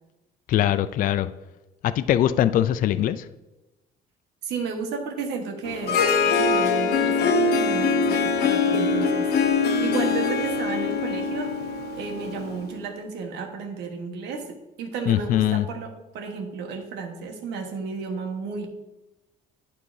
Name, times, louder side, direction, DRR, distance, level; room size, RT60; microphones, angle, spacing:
voice 1, 0.5-1.3 1.8-3.3 15.1-15.7, left 11 dB, 55° left, 14 dB, 0.4 m, -22 dB
voice 2, 4.4-9.3 9.5-11.5 12.0-18.7, right 5 dB, 80° right, 4 dB, 1.3 m, -33 dB
Harp, 5.6-12.7, left 4 dB, 70° left, 0.8 m, -23 dB
11.5 x 4.7 x 2.6 m, 1.0 s
cardioid pair, 110°, 17 cm